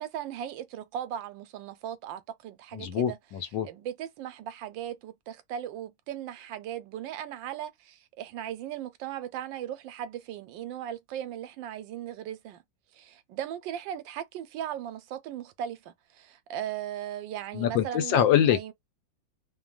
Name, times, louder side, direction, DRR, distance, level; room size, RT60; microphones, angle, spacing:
voice 1, 0.0-3.2 3.6-12.6 12.9-18.7, right 10 dB, 85° right, 1.4 m, -38 dB
voice 2, 2.7-3.7 17.5-18.7, left 10 dB, 80° left, 1.4 m, -25 dB
3.2 x 2.3 x 2.3 m
omnidirectional pair, 2.0 m